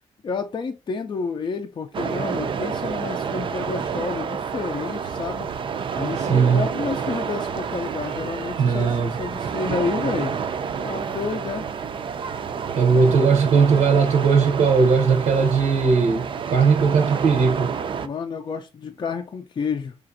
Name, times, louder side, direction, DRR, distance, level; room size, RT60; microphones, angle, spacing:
voice 1, 0.2-5.5 5.9-10.3 10.8-11.7 12.9-13.1 18.0-20.0, left 5 dB, 40° left, 0.4 m, -30 dB
sound 1, 1.9-18.1, right 6 dB, 45° right, 0.4 m, -29 dB
voice 2, 6.2-6.7 8.6-9.2 12.7-17.7, right 5 dB, 80° right, 0.7 m, -18 dB
4.9 x 2.5 x 2.5 m
cardioid pair, 115°, 12 cm